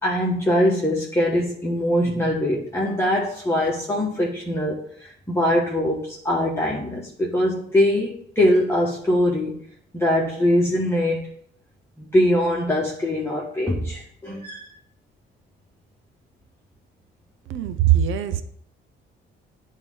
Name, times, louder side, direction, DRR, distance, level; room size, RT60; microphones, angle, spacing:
voice 1, 0.0-9.6 9.9-11.3 12.0-14.7, left 1 dB, 10° left, -4 dB, 1.5 m, -22 dB
voice 2, 17.5-18.4, right 11 dB, 80° right, 10 dB, 0.7 m, -21 dB
8.9 x 3.7 x 5.5 m, 0.66 s
cardioid pair, 90°, 20 cm